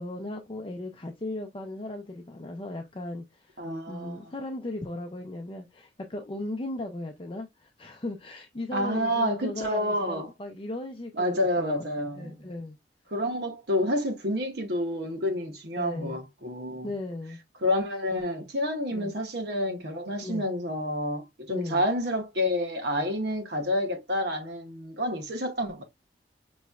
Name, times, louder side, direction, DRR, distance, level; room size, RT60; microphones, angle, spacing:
voice 1, 0.0-11.8 12.1-12.8 15.8-16.2 16.8-17.4 18.9-19.1 20.2-20.5 21.5-21.8, left 1 dB, 30° left, 0.5 m, -37 dB
voice 2, 3.6-4.3 8.7-10.3 11.1-12.5 13.1-16.9 17.6-25.8, left 1 dB, 65° right, 1.1 m, -29 dB
5.4 x 3.0 x 2.3 m
head